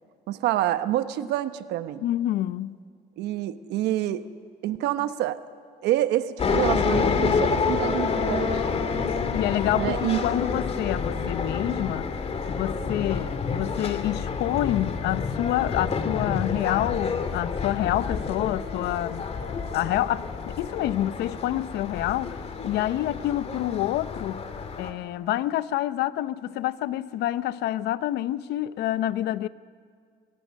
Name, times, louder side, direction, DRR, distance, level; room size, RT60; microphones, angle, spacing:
voice 1, 0.3-2.0 3.2-4.3 4.6-5.4 5.8-8.6 9.7-10.2, right 13 dB, 85° right, 1.1 m, -27 dB
voice 2, 2.0-2.8 9.3-12.1 12.5-19.3 19.7-24.5 24.8-29.5, left 13 dB, 75° left, 0.7 m, -27 dB
sound 1, 6.4-24.9, left 5 dB, 35° left, 2.1 m, -28 dB
25.5 x 22.0 x 6.4 m
cardioid pair, 110°, 17 cm